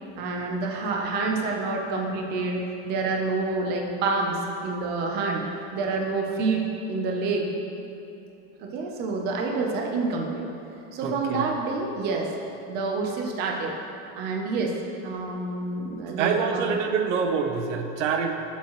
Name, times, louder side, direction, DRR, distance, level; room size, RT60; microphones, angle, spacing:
voice 1, 0.2-5.4 5.7-6.6 6.9-7.5 8.6-10.4 10.9-12.3 12.7-13.7 14.2-14.8 15.0-16.8, right 3 dB, 25° right, 0 dB, 0.8 m, -28 dB
voice 2, 11.0-11.5 16.2-18.4, right 5 dB, 75° right, 4 dB, 1.1 m, -26 dB
19.0 x 7.4 x 3.2 m, 2.8 s
supercardioid pair, 180°, 36 cm